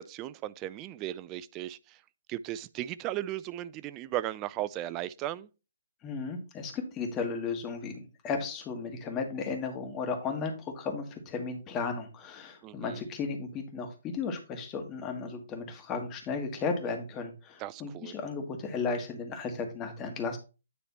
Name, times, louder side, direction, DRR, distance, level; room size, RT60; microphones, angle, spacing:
voice 1, 0.0-2.0 2.3-5.5 12.6-13.0 17.6-18.1, right 14 dB, 25° right, 0.3 m, -36 dB
voice 2, 6.0-20.4, left 4 dB, 20° left, 1.5 m, -35 dB
9.4 x 3.3 x 4.2 m
figure-of-eight pair, 130°, 0 cm